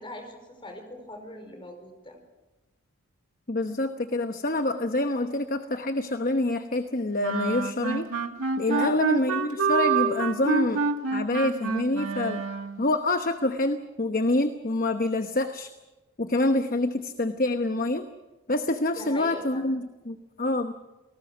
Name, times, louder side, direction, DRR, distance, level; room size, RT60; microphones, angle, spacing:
voice 1, 0.0-2.2 8.7-9.0 18.9-19.6, left 1 dB, 25° left, 4 dB, 4.9 m, -40 dB
voice 2, 3.5-8.1 8.6-10.8 11.1-12.4 12.8-15.7 16.2-18.1 18.5-20.7, left 2 dB, 40° left, 7 dB, 1.0 m, -26 dB
sound 1, 7.2-12.9, right 5 dB, 85° right, 1.7 m, -27 dB
28.5 x 19.0 x 6.1 m, 1.1 s
head